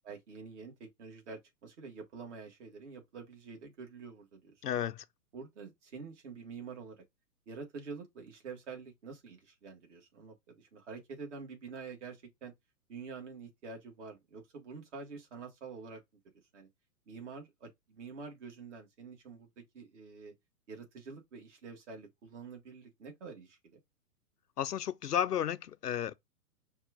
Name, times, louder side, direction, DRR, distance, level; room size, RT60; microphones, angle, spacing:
voice 1, 0.0-4.5 5.3-7.0 7.5-12.5 12.9-16.0 16.5-16.7 17.1-20.3 20.7-23.8, right 5 dB, 45° right, 1.7 m, -47 dB
voice 2, 4.6-5.0 24.6-26.1, left 9 dB, 75° left, 0.6 m, -33 dB
5.3 x 2.4 x 3.6 m
figure-of-eight pair, 115°, 48 cm